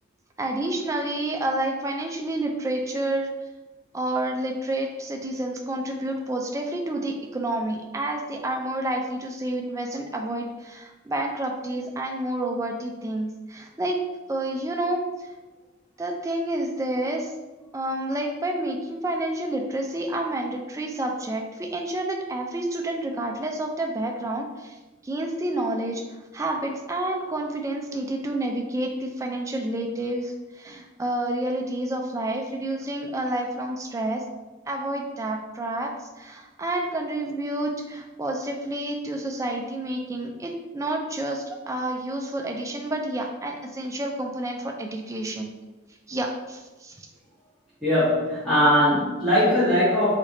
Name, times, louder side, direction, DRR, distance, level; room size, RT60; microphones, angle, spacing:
voice 1, 0.4-3.3 3.9-14.0 14.3-15.1 16.0-17.3 17.7-24.8 25.0-26.0 26.3-34.2 34.7-45.5 46.1-47.1, right 1 dB, 15° right, 2 dB, 0.4 m, -29 dB
voice 2, 47.8-50.2, left 1 dB, ahead, -13 dB, 1.1 m, -20 dB
3.2 x 2.4 x 4.0 m, 1.1 s
head